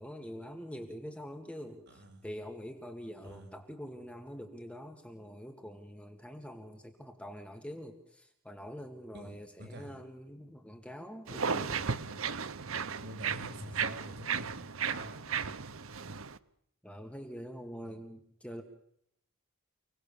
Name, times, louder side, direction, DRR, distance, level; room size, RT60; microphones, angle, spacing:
voice 1, 0.0-11.8 16.8-18.6, equal, 5° left, 4 dB, 2.2 m, -45 dB
voice 2, 1.9-2.2 3.2-3.5 9.1-10.0 13.0-15.3 17.8-18.0, equal, 55° right, 4 dB, 6.9 m, -47 dB
sound 1, 11.3-16.4, right 6 dB, 75° right, 1.0 m, -35 dB
29.5 x 19.5 x 7.1 m, 0.72 s
head